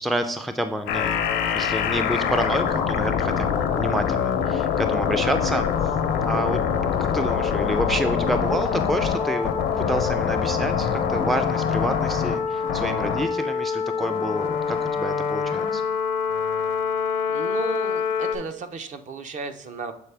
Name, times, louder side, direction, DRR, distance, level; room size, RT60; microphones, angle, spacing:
voice 1, 0.0-5.7 6.3-6.6 7.0-9.5 9.8-15.8, right 1 dB, ahead, 8 dB, 0.3 m, -28 dB
sound 1, 0.9-18.4, left 7 dB, 85° left, 0.6 m, -24 dB
voice 2, 17.3-19.9, right 4 dB, 45° right, 9 dB, 0.6 m, -34 dB
6.8 x 4.2 x 3.3 m, 0.71 s
cardioid pair, 110°, 17 cm